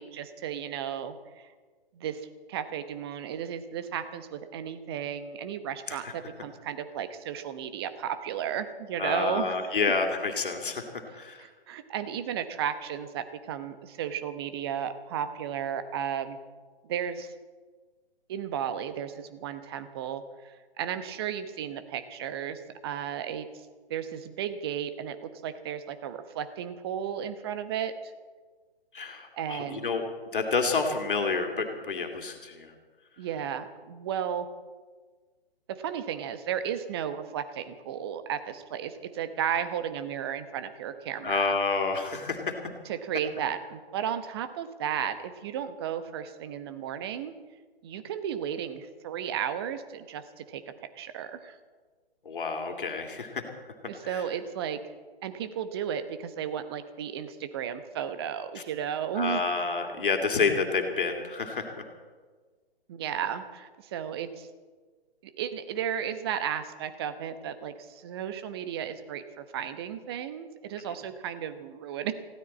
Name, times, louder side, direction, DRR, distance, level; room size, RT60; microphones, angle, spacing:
voice 1, 0.0-1.5 1.9-9.6 9.8-9.9 11.1-16.4 16.8-17.3 18.3-23.5 23.9-28.1 29.4-29.9 33.2-34.5 35.7-41.6 42.8-47.3 47.8-51.6 53.9-54.8 55.2-59.4 62.9-64.5 65.2-72.1, right 9 dB, 25° right, 10 dB, 1.0 m, -34 dB
voice 2, 9.0-11.4 28.9-30.0 30.3-32.7 41.2-42.5 52.2-53.4 59.2-61.7, left 4 dB, 55° left, 3 dB, 2.6 m, -29 dB
20.5 x 16.0 x 4.3 m, 1.4 s
figure-of-eight pair, 135°, 31 cm